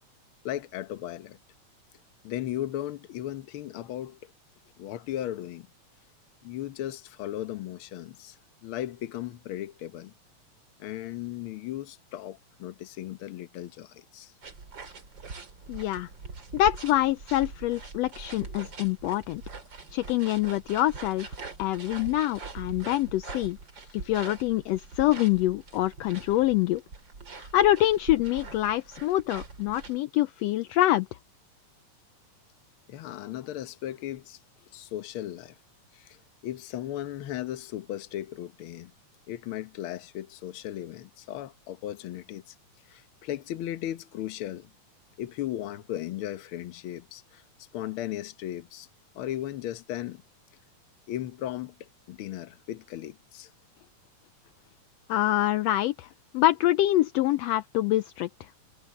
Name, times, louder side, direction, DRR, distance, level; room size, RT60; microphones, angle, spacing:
voice 1, 0.4-1.4 2.2-4.3 4.8-5.7 6.4-10.1 10.8-14.3 24.0-24.1 32.9-34.4 34.7-35.6 35.9-36.2 36.4-38.9 39.3-42.5 42.9-44.7 45.2-47.4 47.7-48.9 49.1-50.2 51.1-53.5, left 13 dB, 65° left, 1.4 m, -36 dB
sound 1, 14.4-30.0, right 4 dB, 40° right, 3.6 m, -43 dB
voice 2, 15.7-16.1 16.5-19.4 19.9-21.3 21.6-23.6 24.1-26.8 27.4-31.1 55.1-56.1 56.3-58.3, left 15 dB, 80° left, 1.5 m, -25 dB
omnidirectional pair, 3.4 m